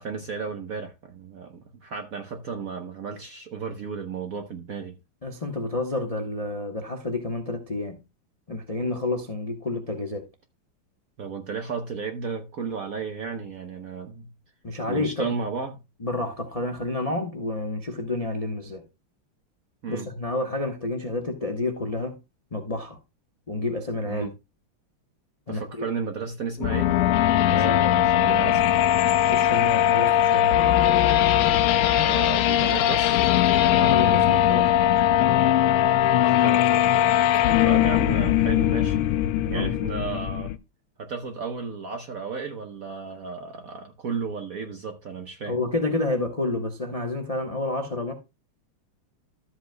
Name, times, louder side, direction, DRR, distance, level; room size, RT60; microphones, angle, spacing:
voice 1, 0.0-5.0 11.2-14.3 14.9-15.8 19.8-20.1 24.0-24.3 25.5-26.9 27.4-28.6 31.9-33.2 36.1-36.7 37.6-39.0 39.5-40.5 41.0-45.6, right 5 dB, 60° right, 1.0 m, -34 dB
voice 2, 5.2-8.0 8.5-10.3 14.6-15.3 16.0-18.8 19.9-22.1 22.5-23.0 23.5-24.3 25.5-25.8 27.5-27.9 29.3-30.6 33.7-34.7 39.5-39.7 45.5-48.1, left 2 dB, 35° left, 0.6 m, -29 dB
sound 1, 26.6-40.6, left 12 dB, 80° left, 1.5 m, -20 dB
13.5 x 7.8 x 2.2 m
omnidirectional pair, 2.4 m